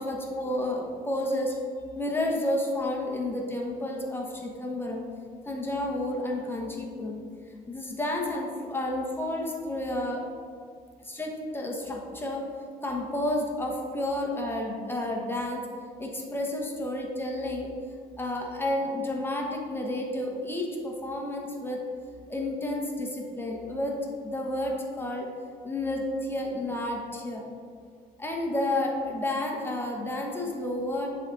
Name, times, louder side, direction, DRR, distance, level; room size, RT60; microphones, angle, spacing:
voice 1, 0.0-1.6 1.9-5.1 5.5-7.2 7.7-10.2 11.0-12.5 12.8-15.7 16.0-17.7 18.2-21.8 22.3-24.0 24.2-25.3 25.6-27.5 28.2-31.1, left 1 dB, 15° left, 0 dB, 0.9 m, -31 dB
10.0 x 3.5 x 3.9 m, 2.1 s
cardioid pair, 110°, 17 cm